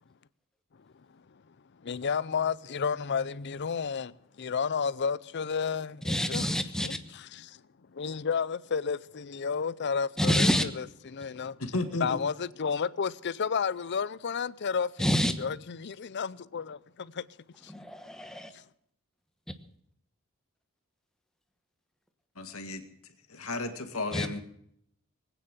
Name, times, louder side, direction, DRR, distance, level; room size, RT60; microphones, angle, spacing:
voice 1, 1.8-6.5 6.8-7.6 7.9-10.5 10.8-11.6 12.0-15.1 15.4-17.2 17.6-17.7 18.5-18.6, left 6 dB, 50° left, 0.5 m, -32 dB
voice 2, 6.0-7.0 10.2-10.7 15.0-15.3 17.7-18.5 24.1-24.3, equal, 5° left, 1.1 m, -27 dB
voice 3, 11.6-12.2 22.4-22.8 23.3-24.4, left 2 dB, 75° left, 1.9 m, -33 dB
20.0 x 9.2 x 7.4 m
head